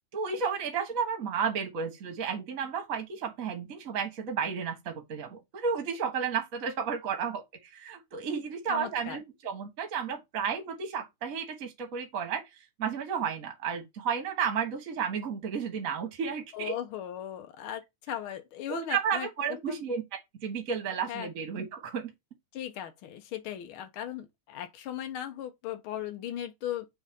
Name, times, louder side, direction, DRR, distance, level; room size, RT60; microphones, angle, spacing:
voice 1, 0.1-12.4 12.8-16.7 18.7-20.0 20.4-22.1, right 6 dB, 40° right, 1.3 m, -32 dB
voice 2, 8.7-9.2 16.5-19.3 19.7-19.8 21.1-21.3 22.5-26.9, left 11 dB, 75° left, 1.2 m, -37 dB
6.3 x 3.4 x 5.2 m
omnidirectional pair, 3.5 m